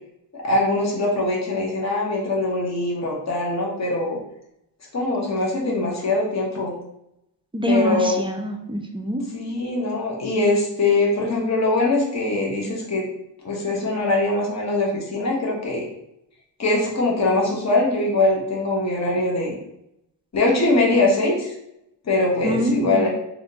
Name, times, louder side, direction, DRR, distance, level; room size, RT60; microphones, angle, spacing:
voice 1, 0.4-4.2 4.9-6.7 7.7-8.2 9.3-13.0 13.4-15.8 16.6-19.6 20.3-21.5 22.1-23.1, left 2 dB, 40° left, -2 dB, 1.0 m, -22 dB
voice 2, 7.5-9.2 22.4-23.1, equal, 15° right, 3 dB, 0.3 m, -24 dB
3.4 x 2.5 x 2.7 m, 0.80 s
cardioid pair, 85°, 43 cm